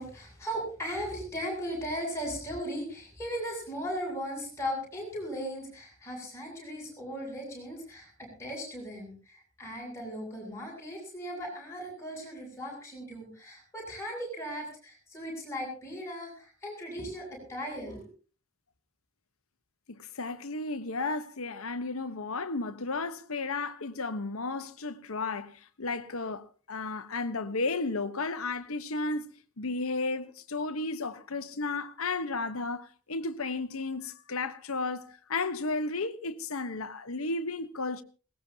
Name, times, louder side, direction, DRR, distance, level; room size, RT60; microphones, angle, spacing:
voice 1, 0.0-18.1, equal, 15° left, 7.9 m, -37 dB
voice 2, 19.9-29.3 29.6-38.0, left 3 dB, 85° left, 1.2 m, -33 dB
21.5 x 18.5 x 2.9 m
head